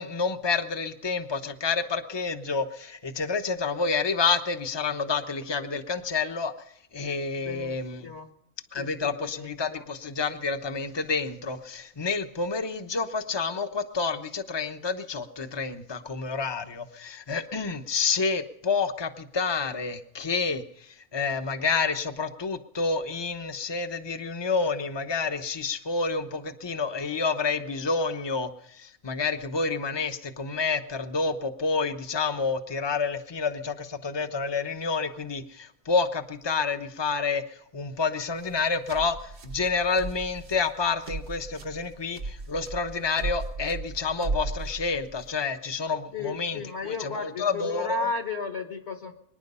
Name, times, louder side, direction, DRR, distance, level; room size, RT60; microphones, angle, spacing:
voice 1, 0.0-6.5 6.9-8.1 8.7-37.4 37.7-48.1, left 4 dB, 20° left, 8 dB, 0.9 m, -29 dB
voice 2, 7.4-7.8 8.0-8.3 8.8-9.8 46.1-49.1, left 4 dB, 55° left, 5 dB, 1.6 m, -34 dB
sound 1, 38.4-45.3, right 3 dB, 55° right, 1.2 m, -36 dB
23.5 x 10.5 x 5.5 m, 0.74 s
omnidirectional pair, 1.4 m